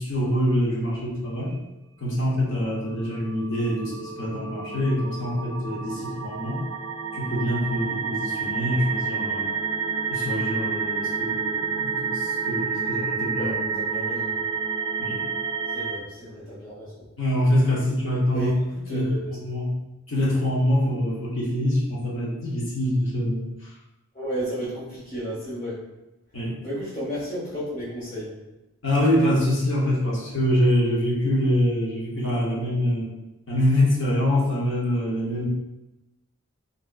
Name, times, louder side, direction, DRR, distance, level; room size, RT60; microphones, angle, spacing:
voice 1, 0.0-1.6 2.0-6.6 7.1-9.5 10.1-13.8 15.0-15.2 17.2-18.5 18.9-19.7 20.1-23.7 26.3-26.5 28.8-33.1 33.5-35.5, left 1 dB, 60° left, -3 dB, 0.9 m, -25 dB
sound 1, 2.7-16.0, right 6 dB, 80° right, 0.4 m, -29 dB
voice 2, 13.4-14.3 15.7-17.0 18.2-19.4 24.1-25.8 26.6-28.4, equal, 45° left, -10 dB, 1.4 m, -33 dB
3.5 x 2.7 x 2.4 m, 0.96 s
head